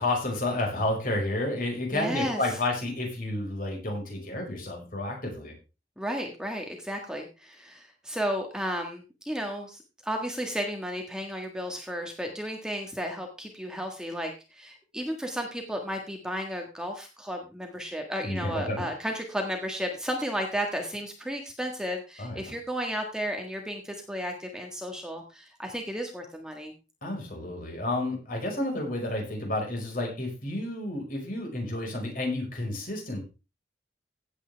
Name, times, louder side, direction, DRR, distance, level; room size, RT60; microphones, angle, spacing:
voice 1, 0.0-5.6 18.2-18.9 22.2-22.5 27.0-33.2, left 2 dB, 50° left, 1 dB, 5.1 m, -31 dB
voice 2, 1.9-2.4 6.0-26.7, equal, 5° right, 2 dB, 1.6 m, -33 dB
16.5 x 8.4 x 3.4 m, 0.29 s
head